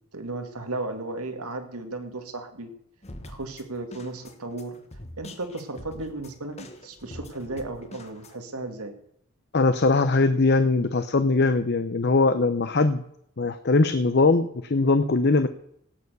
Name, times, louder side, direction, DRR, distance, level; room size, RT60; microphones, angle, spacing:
voice 1, 0.1-2.7 3.3-4.8 5.2-8.9, right 2 dB, 85° right, 6 dB, 2.2 m, -35 dB
sound 1, 3.0-8.4, left 1 dB, 30° left, 1.3 m, -44 dB
voice 2, 9.5-13.0 13.4-15.5, left 3 dB, 50° left, 11 dB, 0.7 m, -21 dB
17.5 x 7.1 x 6.8 m, 0.70 s
head